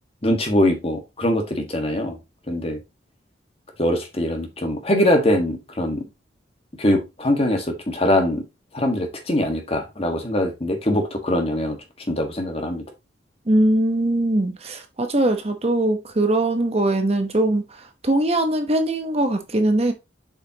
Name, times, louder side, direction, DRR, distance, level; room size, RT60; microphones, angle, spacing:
voice 1, 0.2-2.2 2.5-2.8 3.8-6.0 6.8-8.4 8.7-11.8 12.1-12.8, left 1 dB, 30° left, 1.7 m, -22 dB
voice 2, 13.5-17.6 18.0-19.9, right 1 dB, 35° right, 0.9 m, -21 dB
7.2 x 5.7 x 2.9 m
head